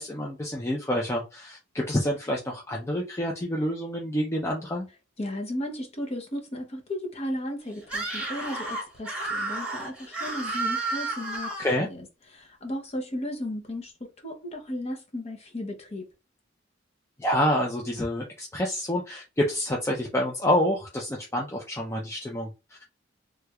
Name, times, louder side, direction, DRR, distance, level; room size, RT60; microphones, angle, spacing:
voice 1, 0.0-4.9 11.6-11.9 17.2-22.5, left 1 dB, 15° left, 0.5 m, -28 dB
voice 2, 5.2-12.1 12.3-16.0, left 1 dB, 35° left, 0.8 m, -35 dB
Screaming, 7.8-11.8, right 2 dB, 5° right, 1.3 m, -32 dB
3.2 x 3.2 x 2.3 m
head